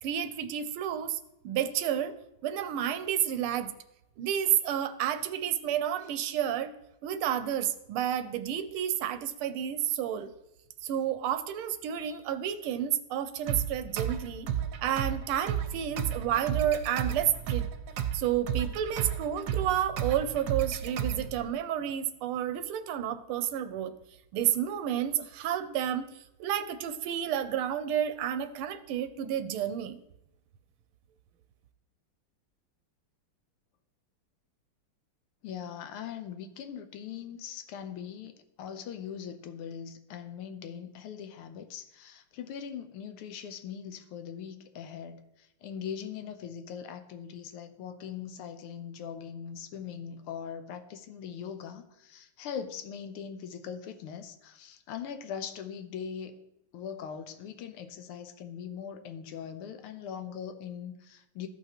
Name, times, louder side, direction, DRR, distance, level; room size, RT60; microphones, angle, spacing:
voice 1, 0.0-1.2 1.4-2.1 2.4-3.7 4.2-6.7 7.0-10.3 10.8-14.5 14.8-17.7 18.1-23.9 24.3-26.1 26.4-30.0, right 10 dB, 85° right, 11 dB, 1.5 m, -30 dB
sound 1, 13.5-21.5, right 9 dB, 70° right, 1.2 m, -33 dB
voice 2, 35.4-56.4 56.7-61.5, left 8 dB, 85° left, 8 dB, 1.7 m, -41 dB
14.5 x 5.7 x 2.9 m, 0.86 s
omnidirectional pair, 2.4 m